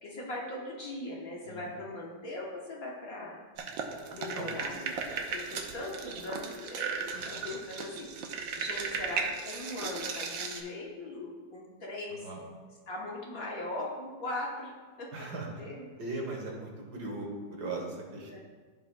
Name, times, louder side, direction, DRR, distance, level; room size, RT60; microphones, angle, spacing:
voice 1, 0.0-3.4 4.1-4.9 5.3-8.1 8.6-12.3 12.9-14.7 15.0-15.1 15.6-15.9 18.3-18.4, left 1 dB, 50° left, -3 dB, 1.4 m, -39 dB
sound 1, 3.6-10.6, right 5 dB, 75° right, 1.5 m, -36 dB
voice 2, 15.1-15.5 16.0-18.4, right 2 dB, 60° right, -1 dB, 1.7 m, -38 dB
14.5 x 5.4 x 2.2 m, 1.5 s
omnidirectional pair, 2.1 m